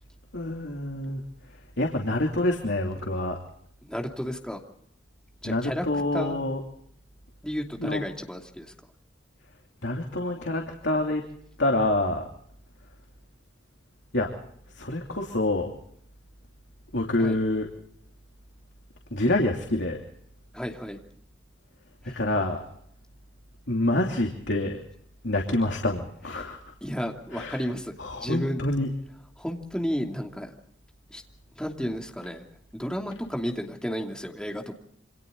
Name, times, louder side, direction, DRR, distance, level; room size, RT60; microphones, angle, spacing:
voice 1, 0.3-1.2 1.8-3.4 5.4-6.6 7.8-8.0 9.8-11.2 11.6-12.2 14.1-14.3 14.8-15.7 16.9-17.7 19.1-20.0 22.0-22.6 23.7-24.8 25.2-26.6 27.3-27.6 28.0-28.9, left 1 dB, 70° left, 1 dB, 2.9 m, -26 dB
voice 2, 3.8-4.6 5.4-5.9 6.1-6.4 7.4-8.7 17.2-17.4 20.5-21.0 22.0-22.1 26.8-28.6 29.4-30.5 31.1-31.2 31.6-32.4 32.7-34.7, equal, 5° left, 2 dB, 2.9 m, -32 dB
28.0 x 26.0 x 4.0 m, 0.66 s
head